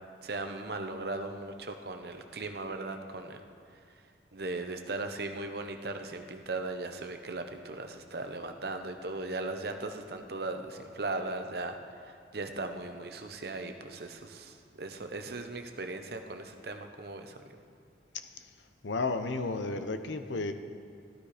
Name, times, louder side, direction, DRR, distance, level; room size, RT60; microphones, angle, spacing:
voice 1, 0.2-3.4 3.7-4.0 4.3-17.6, right 2 dB, 55° right, 6 dB, 0.9 m, -38 dB
voice 2, 18.8-20.5, left 3 dB, 85° left, 9 dB, 0.8 m, -32 dB
13.5 x 12.5 x 5.0 m, 2.2 s
head